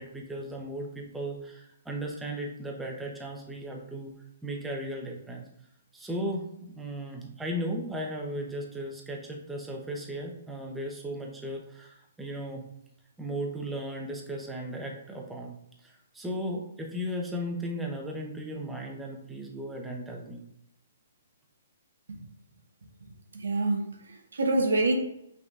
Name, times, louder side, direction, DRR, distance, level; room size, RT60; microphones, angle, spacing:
voice 1, 0.0-4.1 4.4-5.5 5.9-12.6 13.2-15.6 15.8-20.4, equal, 5° right, 0.8 m, -36 dB
voice 2, 23.3-24.9, right 2 dB, 85° right, 1.1 m, -27 dB
5.7 x 3.8 x 2.4 m
hypercardioid pair, 150°, 0 cm